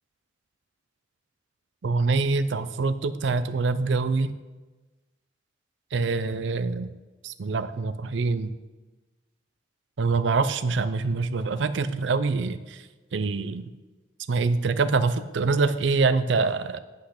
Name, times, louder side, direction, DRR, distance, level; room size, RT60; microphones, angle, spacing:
voice 1, 1.8-4.3 5.9-6.9 7.2-8.5 10.0-12.8 13.1-13.6 14.3-16.8, right 4 dB, 65° right, 13 dB, 0.5 m, -25 dB
8.1 x 8.1 x 6.6 m, 1.2 s
head